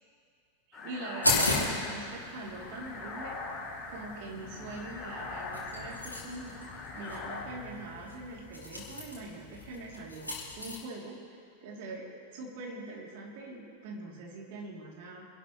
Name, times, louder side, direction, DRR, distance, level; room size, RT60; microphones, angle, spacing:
sound 1, 0.7-7.4, left 3 dB, 25° left, 3.5 m, -42 dB
voice 1, 0.7-3.4 3.9-6.6 6.9-11.2 11.6-15.2, right 2 dB, 50° right, -2 dB, 3.1 m, -43 dB
sound 2, 1.2-10.8, left 2 dB, 85° left, 3.0 m, -36 dB
25.0 x 12.0 x 3.2 m, 2.2 s
figure-of-eight pair, 90°, 0 cm